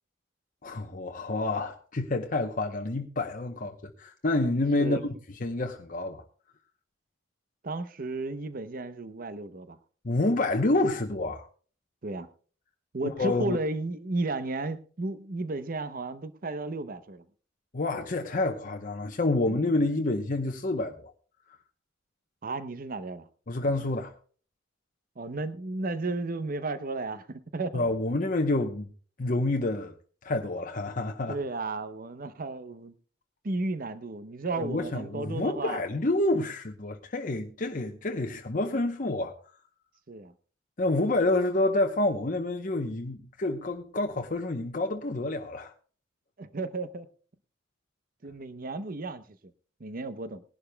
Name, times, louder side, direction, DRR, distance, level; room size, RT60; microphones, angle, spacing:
voice 1, 0.6-5.1 5.4-6.2 10.0-11.5 13.0-13.6 17.7-21.1 23.5-24.1 27.7-28.9 29.2-29.9 30.2-31.4 34.5-39.4 40.8-45.7, left 2 dB, 45° left, 0.8 m, -28 dB
voice 2, 7.6-9.8 12.0-12.3 12.9-17.2 19.5-19.6 22.4-23.3 25.2-27.9 31.3-32.9 33.4-35.8 40.1-40.3 46.4-47.1 48.2-49.2 49.8-50.4, right 3 dB, 45° right, 0.7 m, -33 dB
20.5 x 11.5 x 2.2 m
head